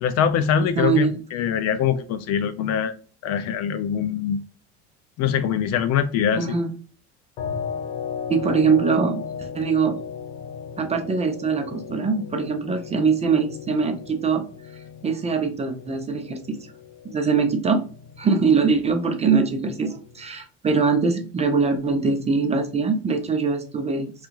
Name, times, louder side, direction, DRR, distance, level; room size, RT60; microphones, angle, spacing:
voice 1, 0.0-2.9 3.2-4.4 5.2-6.5, left 8 dB, 50° left, 12 dB, 0.4 m, -23 dB
voice 2, 0.8-1.2 6.4-6.7 8.3-10.0 10.8-14.4 15.0-16.6 17.0-17.8 18.2-24.1, right 5 dB, 20° right, 5 dB, 0.5 m, -22 dB
sound 1, 7.4-20.4, left 7 dB, 80° left, 1.0 m, -37 dB
3.4 x 2.4 x 3.0 m, 0.40 s
supercardioid pair, 115°, 34 cm